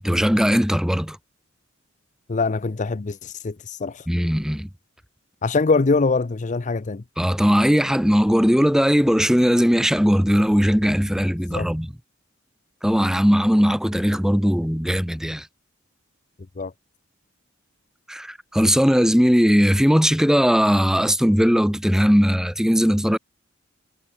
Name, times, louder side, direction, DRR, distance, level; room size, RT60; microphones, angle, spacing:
voice 1, 0.0-1.2 4.1-4.7 7.2-11.9 12.8-15.5 18.1-23.2, equal, 5° right, 1.7 m, -19 dB
voice 2, 2.3-4.0 5.4-7.0 11.5-11.7 16.6-16.7, left 3 dB, 40° left, 0.6 m, -23 dB
head